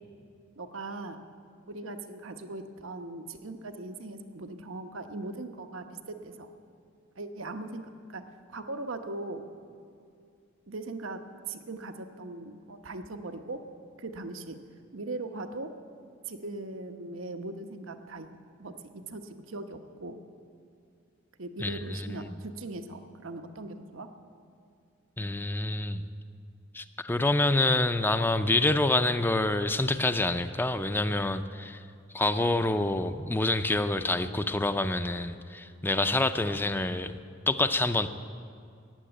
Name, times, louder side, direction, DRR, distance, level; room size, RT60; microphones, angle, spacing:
voice 1, 0.6-1.2 1.7-6.5 7.1-9.4 10.7-13.6 14.0-14.6 14.9-15.7 16.3-18.3 18.6-20.2 21.4-24.1, right 2 dB, 90° right, 7 dB, 1.0 m, -39 dB
voice 2, 21.6-22.4 25.2-26.1 26.7-31.8 32.1-37.2 37.5-38.1, left 2 dB, 10° left, 11 dB, 0.5 m, -27 dB
15.0 x 9.5 x 9.0 m, 2.3 s
head